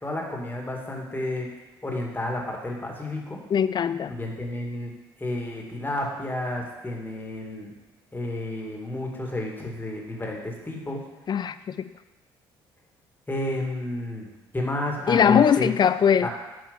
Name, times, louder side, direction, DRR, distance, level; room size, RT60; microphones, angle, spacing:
voice 1, 0.0-1.5 1.8-3.4 4.1-4.9 5.2-7.7 8.1-11.0 13.3-15.7 16.2-16.3, left 1 dB, 15° left, 0 dB, 2.0 m, -31 dB
voice 2, 3.5-4.1 11.3-11.9 15.1-16.3, left 8 dB, 35° left, 14 dB, 0.4 m, -21 dB
7.5 x 4.4 x 5.5 m, 1.1 s
hypercardioid pair, 50°, 12 cm